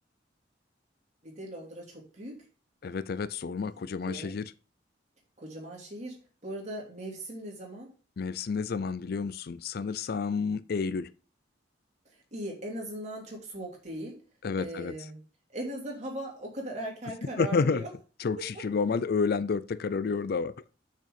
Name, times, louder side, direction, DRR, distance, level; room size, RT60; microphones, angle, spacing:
voice 1, 1.2-2.5 4.0-4.4 5.4-7.9 12.3-14.2 14.6-15.2 15.5-17.9 18.5-18.6, right 1 dB, 40° right, 3.0 m, -39 dB
voice 2, 2.8-4.5 8.2-11.1 14.4-14.9 17.4-17.8 18.2-20.7, left 5 dB, 55° left, 0.4 m, -30 dB
6.6 x 6.4 x 5.0 m
head